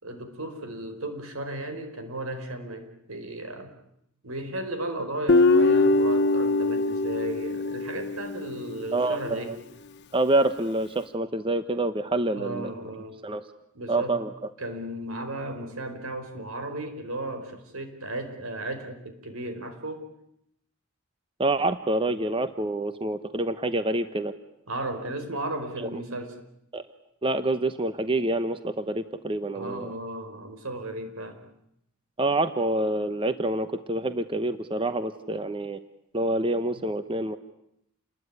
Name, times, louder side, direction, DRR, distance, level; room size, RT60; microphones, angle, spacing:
voice 1, 0.0-3.7 4.2-9.5 12.1-13.2 13.7-14.2 14.6-20.1 24.7-26.3 29.5-31.4, right 1 dB, 80° right, 8 dB, 4.7 m, -35 dB
Guitar, 5.3-8.6, left 2 dB, 55° left, 1.0 m, -22 dB
voice 2, 8.9-9.6 10.1-12.7 13.2-13.5 13.9-14.5 21.4-24.3 25.8-25.9 26.7-26.8 27.2-29.9 32.2-35.8 36.1-37.4, right 2 dB, 25° right, 11 dB, 1.0 m, -27 dB
29.0 x 21.0 x 9.8 m, 0.80 s
head